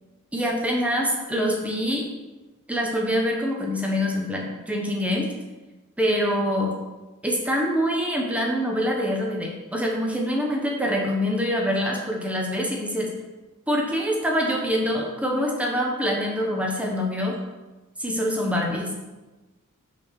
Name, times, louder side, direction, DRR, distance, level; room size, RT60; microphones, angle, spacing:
voice 1, 0.3-2.0 2.7-5.3 6.0-6.7 7.2-13.1 13.7-17.4 18.0-19.0, equal, 5° right, -1 dB, 1.0 m, -25 dB
6.0 x 4.4 x 6.3 m, 1.2 s
head